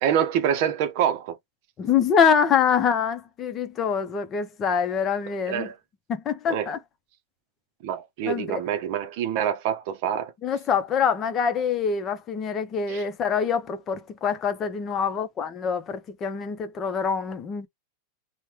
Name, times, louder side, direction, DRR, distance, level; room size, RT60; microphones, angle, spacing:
voice 1, 0.0-1.4 5.5-5.7 6.5-6.7 7.8-10.3 12.9-13.0, right 9 dB, 55° right, 0.6 m, -26 dB
voice 2, 1.8-5.7 6.1-6.8 8.3-8.6 10.4-17.7, left 6 dB, 30° left, 0.6 m, -25 dB
3.3 x 2.1 x 2.8 m
supercardioid pair, 140°, 0 cm